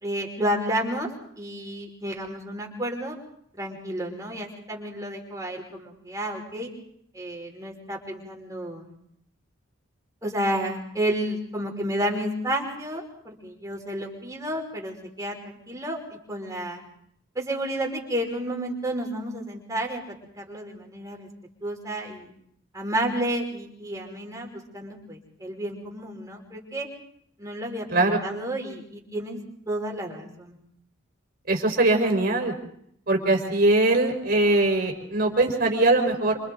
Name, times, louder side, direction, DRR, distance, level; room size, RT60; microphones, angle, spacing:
voice 1, 0.0-1.1 1.4-3.2 3.5-6.7 7.1-8.9 10.2-16.8 17.4-21.3 21.6-22.3 22.7-26.9 27.4-29.4 29.7-30.6, right 1 dB, 15° right, -1 dB, 5.7 m, -31 dB
voice 2, 31.5-32.6 33.1-36.4, right 2 dB, 50° right, 3 dB, 4.6 m, -21 dB
28.0 x 27.0 x 4.0 m, 0.68 s
head